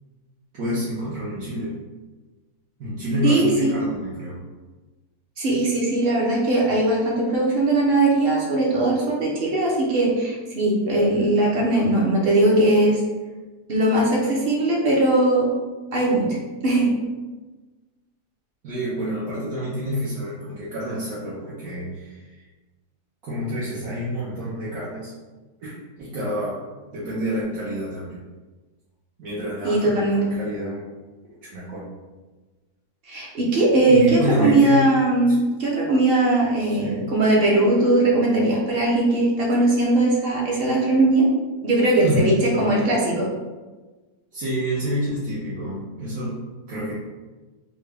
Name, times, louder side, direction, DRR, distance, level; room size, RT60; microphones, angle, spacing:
voice 1, 0.6-1.7 2.8-4.4 18.6-22.4 23.2-25.1 25.6-26.6 26.9-28.2 29.2-30.8 31.4-31.9 33.9-34.8 35.3-35.4 36.7-37.1 42.0-42.9 44.3-46.4 46.7-46.9, equal, 70° right, -8 dB, 1.2 m, -28 dB
voice 2, 3.2-3.7 5.4-13.0 13.7-15.5 15.9-16.2 16.6-16.9 29.6-30.3 33.1-41.3 41.6-43.3, right 2 dB, 50° right, -3 dB, 0.7 m, -19 dB
3.5 x 2.1 x 3.3 m, 1.2 s
omnidirectional pair, 1.7 m